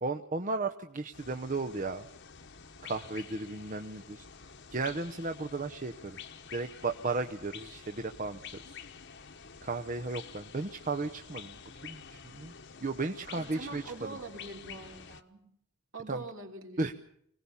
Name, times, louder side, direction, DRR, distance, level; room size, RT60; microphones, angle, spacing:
voice 1, 0.0-2.1 2.8-4.2 4.7-6.2 6.5-8.4 8.7-8.8 9.6-11.6 11.8-12.5 12.8-14.1 16.1-16.2 16.8-16.9, right 3 dB, 35° right, 6 dB, 0.8 m, -35 dB
sound 1, 1.1-15.2, left 6 dB, 55° left, 1.2 m, -49 dB
voice 2, 13.3-15.4 15.9-16.8, right 3 dB, 60° right, 2 dB, 3.5 m, -43 dB
25.0 x 18.5 x 7.1 m, 0.71 s
head